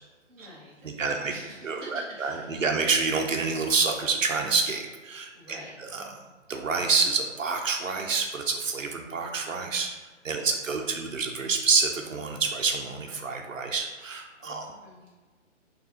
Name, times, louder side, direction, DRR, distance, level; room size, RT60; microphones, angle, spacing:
voice 1, 0.3-2.6 5.3-5.8 10.3-10.8 14.4-15.1, equal, 15° right, -9 dB, 1.2 m, -47 dB
voice 2, 0.8-1.3 1.6-6.2 6.5-9.9 10.2-14.7, right 4 dB, 90° right, 3 dB, 0.8 m, -28 dB
3.7 x 3.2 x 4.3 m, 1.3 s
hypercardioid pair, 150°, 38 cm